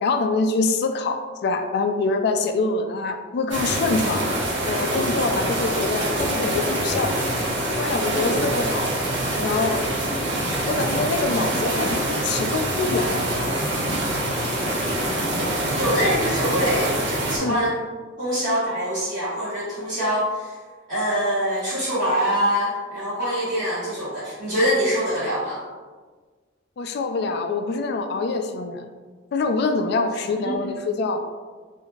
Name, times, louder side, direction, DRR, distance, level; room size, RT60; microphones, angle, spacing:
voice 1, 0.0-4.2 4.7-7.2 7.8-8.9 9.4-9.8 10.7-13.3 17.4-17.6 26.8-28.9 29.3-31.2, left 3 dB, 55° left, 7 dB, 0.3 m, -25 dB
sound 1, 3.5-17.4, right 1 dB, 65° right, 0.8 m, -25 dB
voice 2, 9.3-10.2 15.4-16.9 17.3-17.8 18.2-20.6 20.9-25.6 30.4-30.6, equal, 45° right, -13 dB, 1.2 m, -25 dB
3.7 x 2.6 x 2.3 m, 1.5 s
head